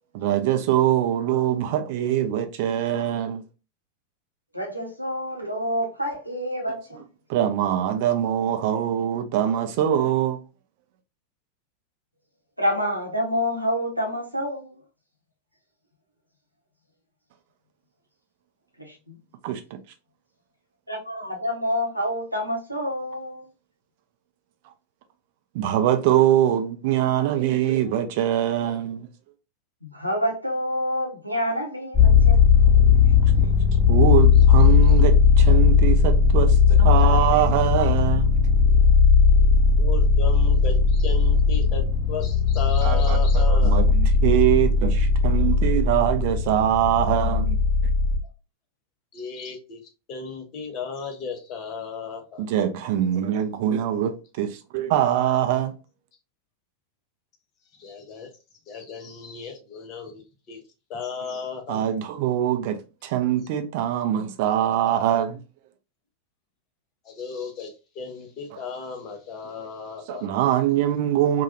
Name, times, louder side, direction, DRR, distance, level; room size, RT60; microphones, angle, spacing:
voice 1, 0.1-3.4 7.3-10.4 19.4-19.6 25.5-29.1 33.2-33.5 33.9-38.2 42.8-47.6 52.4-55.7 61.7-65.4 68.5-68.6 69.6-69.7 70.1-71.4, right 11 dB, 50° right, 0.5 m, -23 dB
voice 2, 4.5-7.0 12.6-14.8 18.8-19.1 20.9-23.5 29.8-32.4, equal, 90° right, 0.8 m, -28 dB
sound 1, 31.9-48.2, left 5 dB, 15° left, 1.2 m, -18 dB
voice 3, 39.8-43.9 49.1-49.8 50.1-52.5 57.8-58.3 58.7-60.6 60.9-61.8 67.0-70.3, left 5 dB, 35° left, 0.8 m, -35 dB
3.2 x 2.3 x 2.5 m
figure-of-eight pair, 90°, 0 cm